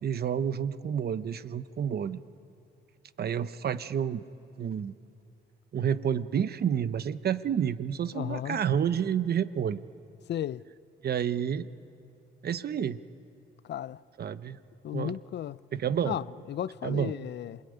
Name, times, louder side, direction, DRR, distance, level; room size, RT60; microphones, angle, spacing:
voice 1, 0.0-2.2 3.2-4.2 4.6-4.9 5.7-9.8 11.0-11.7 12.4-13.0 14.2-14.6 14.9-15.2 15.7-16.2 16.8-17.1, right 8 dB, 50° right, 1.0 m, -29 dB
voice 2, 8.1-8.6 10.3-10.6 13.6-14.0 14.8-15.6 16.0-17.6, left 11 dB, 60° left, 0.6 m, -34 dB
26.5 x 21.5 x 9.7 m
cardioid pair, 90°, 20 cm